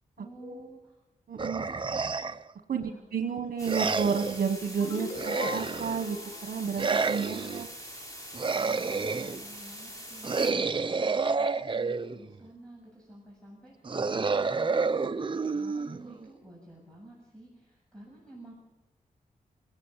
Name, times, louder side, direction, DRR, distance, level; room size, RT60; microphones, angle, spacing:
voice 1, 0.2-1.0 2.7-3.0 8.6-18.5, right 1 dB, 5° left, -3 dB, 7.6 m, -51 dB
voice 2, 1.3-1.7 2.7-7.7, right 6 dB, 80° right, 6 dB, 1.2 m, -31 dB
sound 1, 1.4-2.5 3.7-4.4 5.2-6.1 6.8-7.7 8.3-9.4 10.2-12.3 13.8-16.3, right 4 dB, 35° right, 0.8 m, -29 dB
sound 2, 3.6-10.5, equal, 25° left, 6.1 m, -44 dB
sound 3, 4.8-8.0, left 4 dB, 80° left, 3.2 m, -42 dB
29.0 x 18.0 x 7.4 m, 1.0 s
wide cardioid pair, 145°, 15 cm